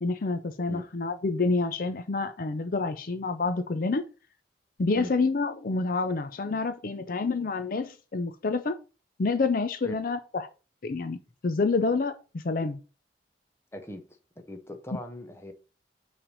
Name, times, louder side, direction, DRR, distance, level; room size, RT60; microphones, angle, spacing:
voice 1, 0.0-4.0 4.8-8.8 9.2-10.5 10.8-11.2 11.4-12.8, left 3 dB, 50° left, 0.5 m, -28 dB
voice 2, 13.7-14.0 14.5-15.5, equal, 15° left, 0.8 m, -39 dB
5.8 x 3.3 x 5.3 m
head